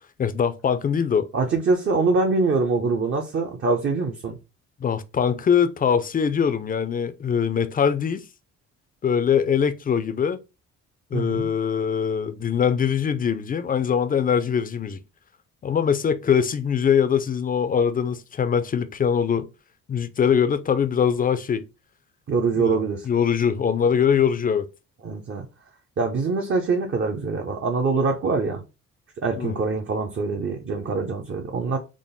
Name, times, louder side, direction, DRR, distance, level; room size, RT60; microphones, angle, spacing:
voice 1, 0.2-1.3 4.8-8.2 9.0-10.4 11.1-15.0 15.6-19.5 19.9-21.6 22.5-24.6 29.4-29.6, left 7 dB, 30° left, 0.4 m, -22 dB
voice 2, 1.3-4.4 11.1-11.5 22.3-23.1 25.0-25.5 26.0-28.6 29.2-31.8, right 4 dB, 40° right, 0.7 m, -24 dB
3.7 x 2.0 x 3.7 m
cardioid pair, 90°, 30 cm